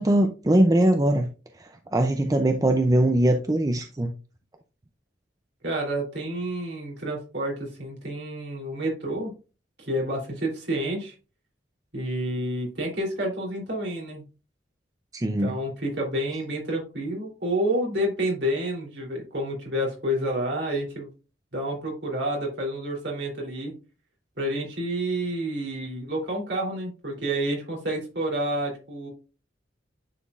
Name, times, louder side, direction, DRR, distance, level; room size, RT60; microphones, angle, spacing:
voice 1, 0.0-4.1 15.1-15.5, right 1 dB, 20° right, 6 dB, 0.5 m, -22 dB
voice 2, 5.6-9.3 9.8-11.1 11.9-14.2 15.2-21.1 21.5-23.7 24.4-29.1, right 1 dB, 65° right, -1 dB, 3.2 m, -29 dB
9.8 x 4.4 x 2.5 m, 0.33 s
head